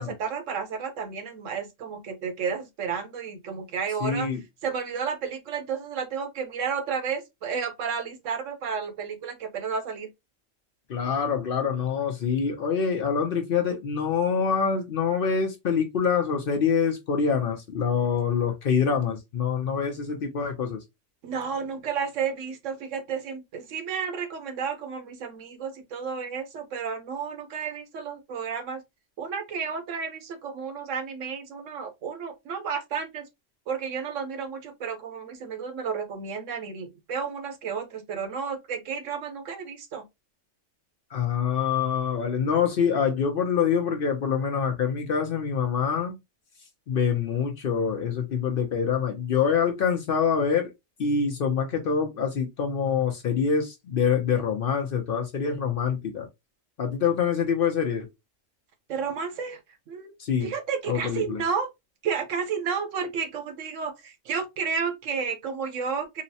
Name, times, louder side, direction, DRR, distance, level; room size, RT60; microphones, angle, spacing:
voice 1, 0.0-4.3 4.6-10.1 21.2-28.8 29.2-33.3 33.7-40.0 58.9-59.6 59.9-60.1 60.4-61.7 62.0-66.2, right 6 dB, 75° right, 1.1 m, -32 dB
voice 2, 4.0-4.4 10.9-20.8 41.1-46.2 46.9-50.7 51.0-56.3 56.8-58.1 60.2-60.5 60.9-61.4, left 6 dB, 55° left, 0.6 m, -25 dB
3.8 x 2.0 x 2.7 m
omnidirectional pair, 1.3 m